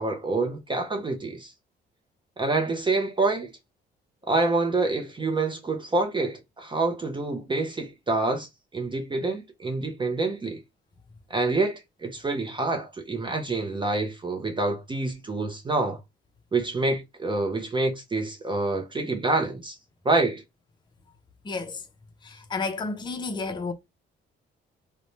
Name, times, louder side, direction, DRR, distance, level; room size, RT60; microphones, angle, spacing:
voice 1, 0.0-1.5 2.4-3.5 4.3-10.6 11.3-16.0 16.5-19.8 20.0-20.4, right 3 dB, 25° right, 0.6 m, -27 dB
voice 2, 21.4-21.9 22.2-23.7, left 3 dB, 20° left, 0.6 m, -31 dB
2.6 x 2.1 x 3.0 m
cardioid pair, 90°, 20 cm